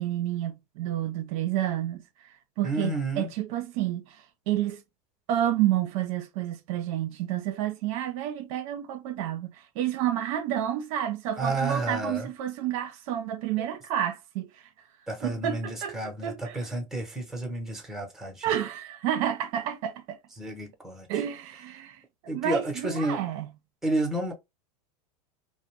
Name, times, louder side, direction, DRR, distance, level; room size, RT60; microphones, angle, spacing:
voice 1, 0.0-4.8 5.3-14.7 15.2-15.9 16.2-16.7 18.4-20.2 21.1-23.5, right 11 dB, 60° right, 0.5 m, -30 dB
voice 2, 2.6-3.3 11.4-12.3 13.6-13.7 15.1-18.4 20.4-21.1 22.3-23.2 23.8-24.3, right 2 dB, ahead, 0.7 m, -31 dB
2.5 x 2.0 x 3.1 m
supercardioid pair, 115°, 20 cm